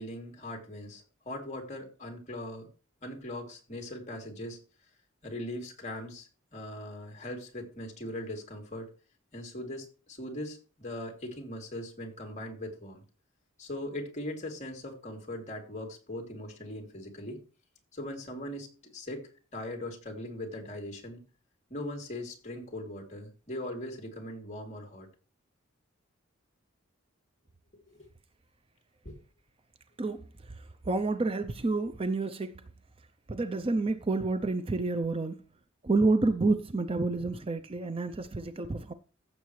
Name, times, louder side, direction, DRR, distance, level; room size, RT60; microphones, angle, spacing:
voice 1, 0.0-2.7 3.0-4.6 5.2-8.9 9.3-13.0 13.6-17.4 17.9-21.2 21.7-25.1 27.7-28.1 29.0-29.2, left 1 dB, 35° left, 2.9 m, -40 dB
voice 2, 30.9-32.6 33.3-35.4 35.8-38.9, right 3 dB, 25° right, 0.5 m, -29 dB
15.0 x 7.1 x 3.2 m
head